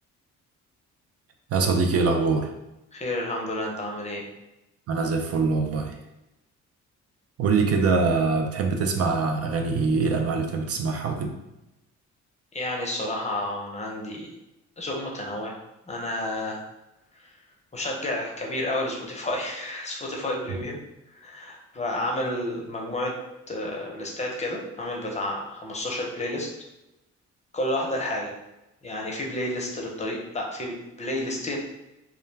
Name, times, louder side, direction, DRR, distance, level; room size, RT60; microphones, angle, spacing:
voice 1, 1.5-2.5 4.9-6.0 7.4-11.3, right 4 dB, 55° right, 4 dB, 0.4 m, -23 dB
voice 2, 2.9-4.2 12.5-14.3 14.8-15.6 15.9-16.6 17.7-20.8 21.1-23.2 23.5-26.5 27.5-28.3 28.8-31.6, left 1 dB, 20° left, -1 dB, 0.6 m, -30 dB
2.3 x 2.1 x 3.2 m, 0.95 s
cardioid pair, 90°, 30 cm